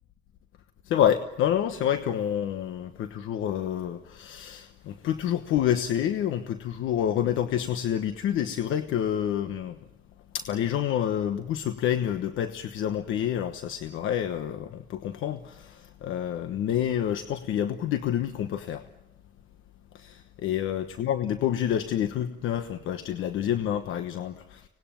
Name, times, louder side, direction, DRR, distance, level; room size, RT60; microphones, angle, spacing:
voice 1, 0.8-9.8 10.3-18.8 19.9-24.7, left 10 dB, 85° left, 9 dB, 1.2 m, -28 dB
25.5 x 19.5 x 9.0 m, 1.0 s
cardioid pair, 90°, 20 cm